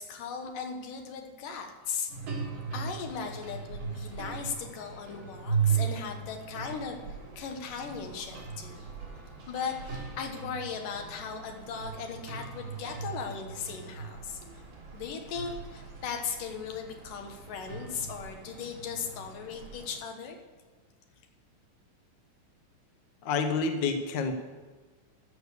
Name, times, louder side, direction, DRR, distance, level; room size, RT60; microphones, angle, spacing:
voice 1, 0.0-2.1 2.7-8.8 9.5-14.4 14.9-20.4, left 6 dB, 90° left, 4 dB, 3.0 m, -38 dB
sound 1, 2.1-20.0, right 6 dB, 85° right, 4.3 m, -37 dB
voice 2, 23.2-24.3, left 4 dB, 70° left, 6 dB, 1.1 m, -28 dB
14.0 x 6.6 x 6.7 m, 1.3 s
omnidirectional pair, 3.6 m